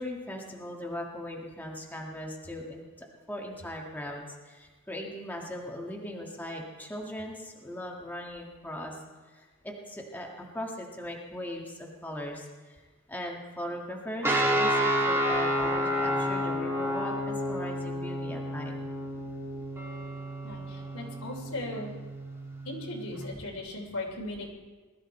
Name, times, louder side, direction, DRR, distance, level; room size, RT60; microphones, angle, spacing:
voice 1, 0.0-9.0 9.3-12.8 13.1-18.7, left 1 dB, 10° left, -1 dB, 1.7 m, -39 dB
sound 1, 14.2-23.2, equal, 10° right, 2.1 m, -30 dB
voice 2, 20.4-21.9 22.6-24.5, left 2 dB, 75° left, 1 dB, 3.3 m, -37 dB
20.5 x 13.5 x 4.4 m, 1.3 s
head